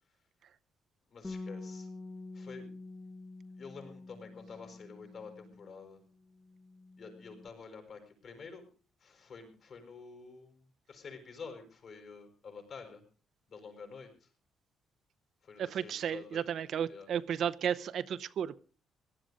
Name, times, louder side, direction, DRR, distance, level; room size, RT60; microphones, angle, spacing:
voice 1, 1.1-1.9 2.3-2.7 3.6-6.0 7.0-8.6 9.0-13.0 13.5-14.3 15.4-16.4 16.9-17.1, left 5 dB, 55° left, 4 dB, 6.3 m, -49 dB
Bass guitar, 1.2-5.9 6.2-7.5, left 3 dB, 25° left, 1.3 m, -47 dB
voice 2, 15.6-18.6, right 8 dB, 65° right, 13 dB, 0.7 m, -33 dB
18.0 x 11.5 x 5.2 m, 0.37 s
cardioid pair, 90°, 0 cm